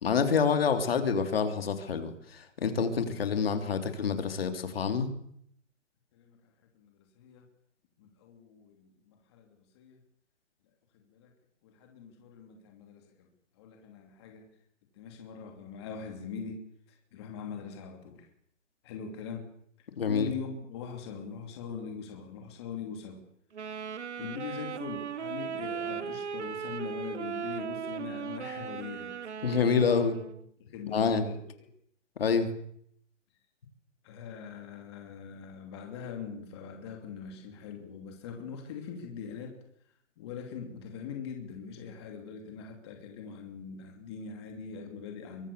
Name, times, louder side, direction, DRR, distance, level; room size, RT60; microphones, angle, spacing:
voice 1, 0.0-5.1 20.0-20.3 29.4-30.2 30.9-31.2 32.2-32.5, left 6 dB, 50° left, 7 dB, 3.5 m, -27 dB
voice 2, 6.7-7.4 8.0-10.0 10.9-11.3 11.6-13.3 13.6-14.5 14.9-18.3 18.8-19.5 20.0-23.2 24.2-29.3 30.6-31.7 34.0-39.6 40.2-45.5, left 6 dB, 20° left, 3 dB, 2.8 m, -42 dB
Wind instrument woodwind instrument, 23.5-30.5, right 7 dB, 60° right, 1.7 m, -37 dB
25.5 x 24.0 x 6.9 m, 0.69 s
hypercardioid pair, 175°, 39 cm